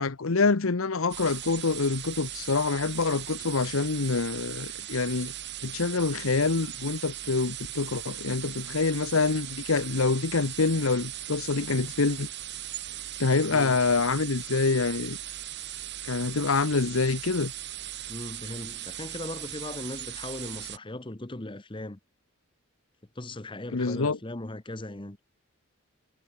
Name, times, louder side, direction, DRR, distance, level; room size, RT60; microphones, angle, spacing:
voice 1, 0.0-5.3 5.6-12.3 13.2-15.2 16.0-17.5 23.7-24.2, left 4 dB, 80° left, 0.9 m, -26 dB
sound 1, 1.1-20.8, right 12 dB, 55° right, 3.2 m, -39 dB
voice 2, 18.1-22.0 23.1-25.2, left 1 dB, 25° left, 1.0 m, -38 dB
head